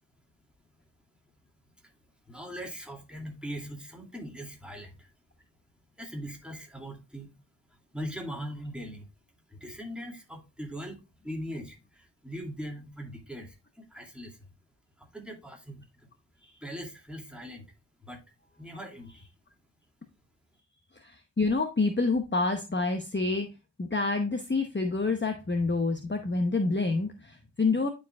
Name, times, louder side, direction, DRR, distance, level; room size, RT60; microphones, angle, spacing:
voice 1, 2.3-5.1 6.0-7.4 7.9-9.1 9.5-11.0 11.2-14.4 15.0-15.8 16.6-17.7 18.0-18.2 18.6-19.3, equal, ahead, 2.4 m, -40 dB
voice 2, 21.0-23.5 23.8-27.9, left 3 dB, 25° left, 0.9 m, -28 dB
11.0 x 4.9 x 2.3 m
wide cardioid pair, 50°, 43 cm